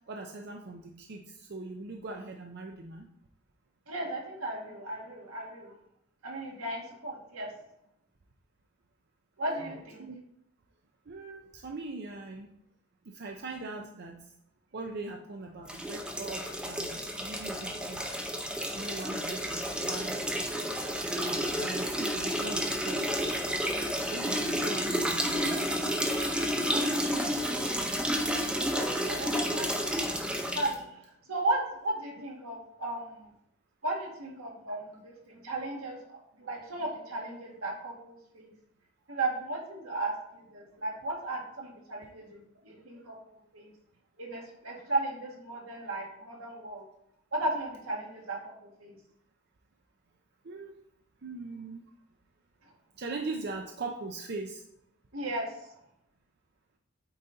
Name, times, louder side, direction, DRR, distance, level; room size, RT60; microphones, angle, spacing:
voice 1, 0.1-3.1 9.6-10.2 11.1-12.5 13.1-14.2 14.7-18.0 18.7-20.3 20.8-23.3 24.0-25.6 27.3-28.1 28.6-28.7 36.5-36.6 42.9-43.0 50.4-50.7 51.2-51.8 53.0-54.6, right 3 dB, 50° right, 2 dB, 0.6 m, -41 dB
voice 2, 3.9-5.7 6.2-7.5 9.4-10.0 28.7-30.0 30.5-30.9 31.3-33.3 33.8-38.5 39.1-43.2 43.5-43.7 44.2-46.9 47.3-49.0 55.1-55.7, right 2 dB, 80° right, -1 dB, 1.9 m, -35 dB
sound 1, 15.7-30.8, equal, 5° right, 0.7 m, -31 dB
8.6 x 4.1 x 4.0 m, 0.76 s
head